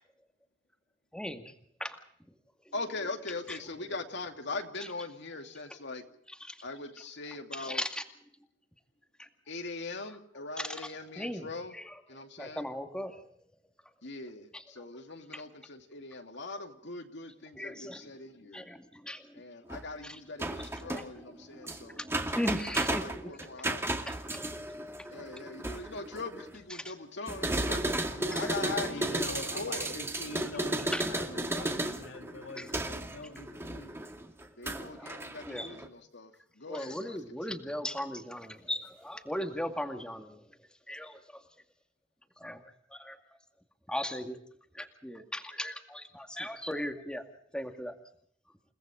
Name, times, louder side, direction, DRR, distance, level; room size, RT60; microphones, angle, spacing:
voice 1, 1.1-1.5 1.8-2.0 6.5-6.6 7.6-8.0 9.2-9.3 10.6-10.7 11.2-11.5 11.8-11.9 12.4-13.2 17.6-18.0 18.5-19.4 22.3-23.3 24.1-24.5 28.3-28.4 30.4-30.5 30.9-31.1 32.6-32.7 33.6-33.7 35.5-35.7 36.7-40.4 40.9-41.2 42.4-42.6 42.9-43.2 43.9-44.4 44.7-47.2 47.5-47.9, left 1 dB, 5° left, 2.2 m, -37 dB
voice 2, 2.7-6.0 6.6-7.8 9.5-11.8 12.1-12.7 14.0-18.6 19.3-22.0 22.7-24.0 25.1-28.0 28.3-30.0 34.6-37.6, left 3 dB, 65° left, 2.7 m, -41 dB
sound 1, 19.7-19.9 20.4-26.6 27.3-35.9, right 1 dB, 15° right, 2.2 m, -34 dB
voice 3, 28.1-33.9, left 2 dB, 90° left, 2.9 m, -44 dB
29.5 x 18.5 x 5.1 m
head